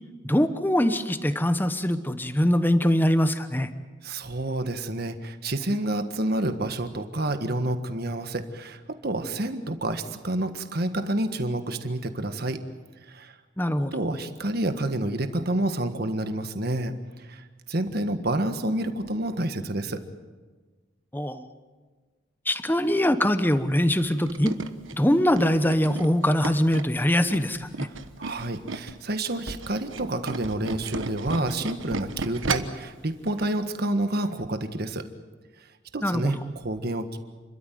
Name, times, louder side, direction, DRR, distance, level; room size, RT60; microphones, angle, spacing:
voice 1, 0.2-3.7 13.6-13.9 21.1-21.5 22.5-24.5 24.9-27.9 36.0-36.3, equal, 10° left, 10 dB, 0.9 m, -23 dB
voice 2, 4.0-12.6 13.1-13.3 13.9-16.9 17.3-17.4 17.7-20.0 28.2-35.0 35.9-37.2, right 1 dB, 55° right, 8 dB, 1.6 m, -29 dB
Tools, 24.0-29.0 29.3-32.8 33.3-33.4 33.7-33.8, right 3 dB, 85° right, 1.3 m, -34 dB
30.0 x 13.0 x 9.3 m, 1.4 s
head